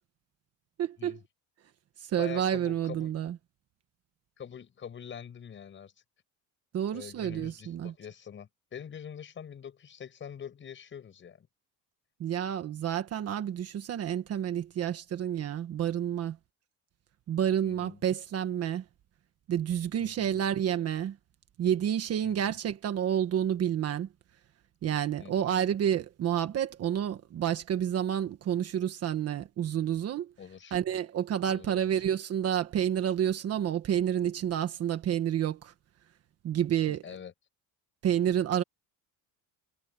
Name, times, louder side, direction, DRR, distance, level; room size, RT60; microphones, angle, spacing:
voice 1, 0.8-1.2 2.0-3.4 6.7-7.9 12.2-16.4 17.3-18.8 19.5-21.2 21.6-24.1 24.8-30.3 30.7-35.7 36.4-37.0 38.0-38.6, right 10 dB, 40° right, 1.4 m, -29 dB
voice 2, 2.2-3.1 4.4-5.9 6.9-11.5 17.6-18.0 20.0-20.4 22.2-22.6 25.2-25.6 30.4-30.8 31.5-32.0 37.0-37.3, left 8 dB, 30° left, 6.5 m, -44 dB
cardioid pair, 175°, 38 cm